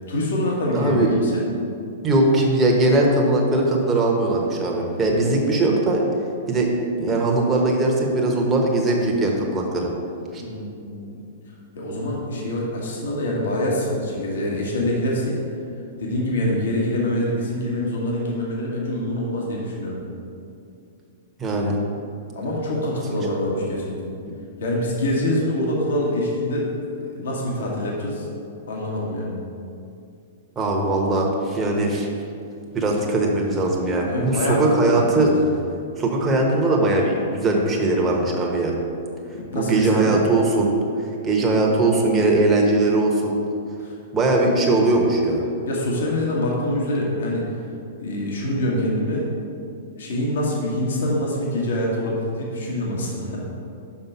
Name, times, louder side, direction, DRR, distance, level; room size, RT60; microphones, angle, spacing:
voice 1, 0.1-1.4 10.4-11.2 11.7-15.4 16.0-20.0 22.3-24.1 24.6-26.7 27.1-28.3 28.7-29.4 34.0-35.4 39.3-40.1 43.8-43.9 45.7-47.5 48.0-49.3 50.0-53.5, left 1 dB, 65° left, -3 dB, 1.5 m, -25 dB
voice 2, 0.7-1.1 2.0-6.0 6.5-9.9 10.3-10.4 21.4-21.8 30.6-32.1 32.7-35.3 36.0-38.7 39.5-40.8 41.2-43.4 44.1-45.5, right 2 dB, 20° right, -1 dB, 1.1 m, -20 dB
5.8 x 5.3 x 5.7 m, 2.5 s
figure-of-eight pair, 105°, 0 cm